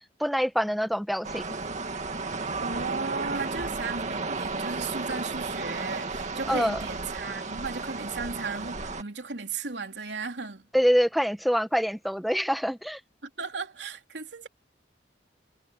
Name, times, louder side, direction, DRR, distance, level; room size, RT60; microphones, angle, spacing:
voice 1, 0.2-1.6 6.5-6.8 10.7-13.0, equal, ahead, 0.9 m, -25 dB
sound 1, 1.2-9.0, right 3 dB, 45° right, 2.1 m, -33 dB
voice 2, 2.6-10.7 13.2-14.5, right 4 dB, 80° right, 3.3 m, -35 dB
head